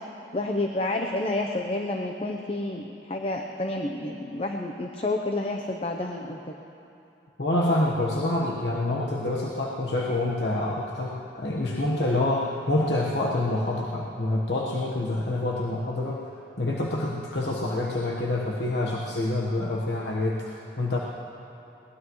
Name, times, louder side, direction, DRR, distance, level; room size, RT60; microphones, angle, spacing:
voice 1, 0.3-6.6, left 2 dB, 35° left, 3 dB, 0.7 m, -29 dB
voice 2, 7.4-16.2 16.6-21.0, left 2 dB, 80° left, -4 dB, 1.2 m, -27 dB
22.0 x 18.5 x 3.1 m, 2.8 s
head